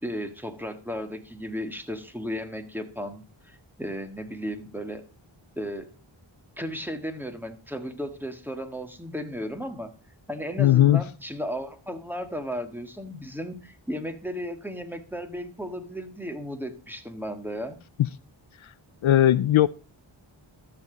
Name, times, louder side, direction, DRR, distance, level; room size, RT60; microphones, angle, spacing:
voice 1, 0.0-5.0 5.6-5.9 6.6-9.9 10.3-17.8, equal, 5° right, 1.8 m, -35 dB
voice 2, 10.6-11.0 18.0-18.1 19.0-19.7, left 12 dB, 70° left, 0.5 m, -18 dB
13.5 x 7.0 x 4.0 m
wide cardioid pair, 55°, 50 cm